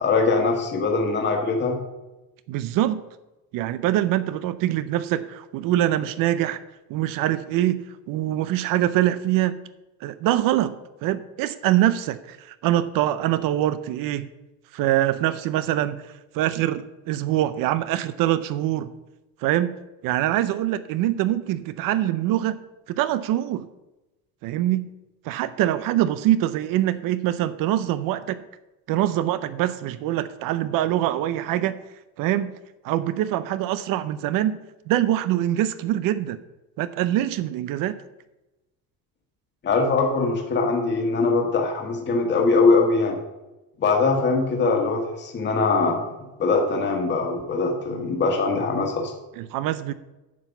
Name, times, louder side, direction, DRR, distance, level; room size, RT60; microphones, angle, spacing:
voice 1, 0.0-1.8 39.6-43.2 43.8-46.0 46.4-49.1, left 3 dB, 30° left, 2 dB, 1.4 m, -22 dB
voice 2, 2.5-3.0 3.5-6.6 6.9-9.6 10.0-14.3 14.7-16.1 16.3-18.9 19.4-19.7 20.0-22.6 22.9-23.7 24.4-24.9 25.2-28.4 28.9-31.8 32.2-32.5 32.8-34.6 34.9-36.4 36.8-38.0 49.4-49.9, right 13 dB, 65° right, 14 dB, 0.6 m, -24 dB
9.5 x 5.8 x 7.0 m, 1.0 s
cardioid pair, 155°, 36 cm